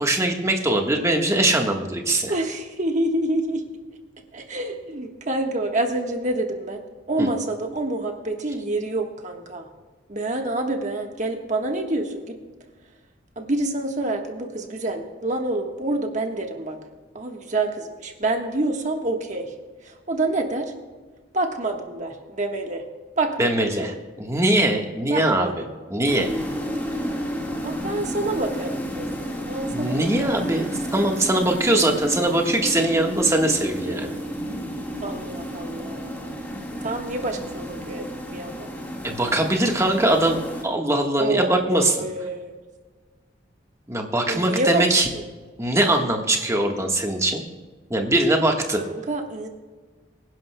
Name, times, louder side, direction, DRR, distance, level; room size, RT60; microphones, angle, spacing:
voice 1, 0.0-2.3 7.2-7.3 23.4-23.9 24.2-25.5 25.9-26.3 29.7-34.1 39.0-40.4 40.6-42.1 43.9-45.1 45.6-47.4 47.9-48.8, right 1 dB, 15° right, 2 dB, 1.3 m, -21 dB
voice 2, 2.3-3.6 4.3-6.8 7.1-9.6 10.1-12.3 13.4-16.8 17.1-19.5 20.1-20.7 21.3-22.8 23.2-23.9 25.1-25.5 27.6-29.1 29.4-30.3 35.0-36.3 36.8-38.7 41.2-42.5 44.3-44.9 45.1-45.2 48.7-49.5, right 2 dB, 40° right, 3 dB, 1.3 m, -27 dB
sound 1, 26.1-40.6, equal, 10° left, 1.7 m, -31 dB
25.0 x 10.5 x 2.2 m, 1.4 s
head